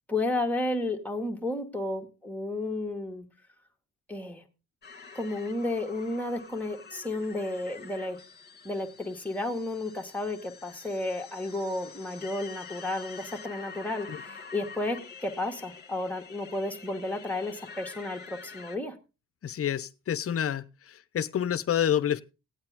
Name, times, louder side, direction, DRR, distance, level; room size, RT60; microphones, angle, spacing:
voice 1, 0.1-3.3 4.1-4.4 5.2-8.2 8.6-19.0, left 2 dB, 5° left, 2 dB, 2.1 m, -32 dB
sound 1, 4.8-18.8, left 5 dB, 35° left, 2.2 m, -47 dB
voice 2, 19.4-22.2, left 9 dB, 50° left, 16 dB, 0.8 m, -28 dB
16.5 x 8.7 x 3.6 m, 0.30 s
cardioid pair, 90°, 30 cm